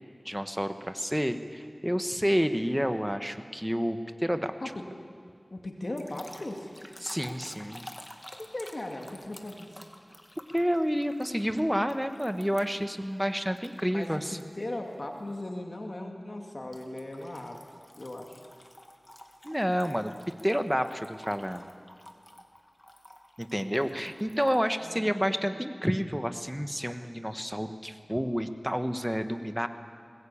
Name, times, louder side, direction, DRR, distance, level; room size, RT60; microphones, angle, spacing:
voice 1, 0.2-4.5 7.0-7.9 10.5-14.4 19.4-20.1 20.4-21.6 23.4-29.7, equal, 5° right, 9 dB, 1.3 m, -29 dB
voice 2, 5.5-6.7 8.4-9.9 13.9-17.6 18.0-18.4 24.8-25.4, left 1 dB, 60° left, 2 dB, 2.2 m, -38 dB
sound 1, 6.0-12.9 13.6-14.4 14.9-15.2 16.7-24.6, left 1 dB, 20° left, 2.0 m, -51 dB
21.0 x 20.0 x 8.7 m, 2.1 s
wide cardioid pair, 45°, 0 cm